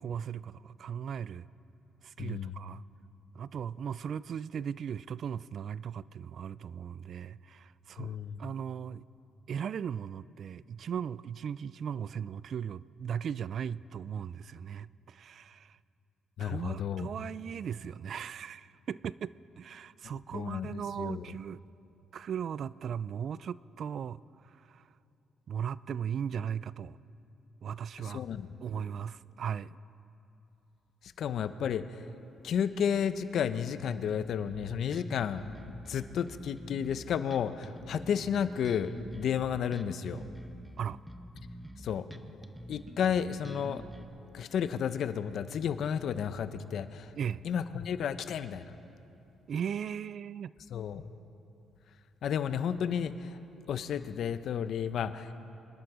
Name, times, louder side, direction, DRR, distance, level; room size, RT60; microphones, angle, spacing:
voice 1, 0.0-1.5 2.0-2.8 3.3-9.0 9.5-15.8 16.4-21.6 22.1-24.8 25.5-27.0 27.6-28.2 28.6-29.8 40.8-41.0 47.2-47.4 49.5-50.5, right 8 dB, 60° right, 19 dB, 0.3 m, -37 dB
voice 2, 2.2-2.6 8.0-8.4 16.4-17.1 20.3-21.2 28.0-28.5 31.2-31.8 32.4-40.2 41.8-42.0 42.7-43.8 44.3-47.1 47.4-48.7 50.7-51.0 52.2-53.3 53.7-55.3, left 8 dB, 70° left, 12 dB, 0.7 m, -32 dB
Bass guitar, 34.5-44.1, right 1 dB, 5° right, 1.0 m, -47 dB
25.5 x 10.5 x 4.9 m, 2.8 s
cardioid pair, 90°, 0 cm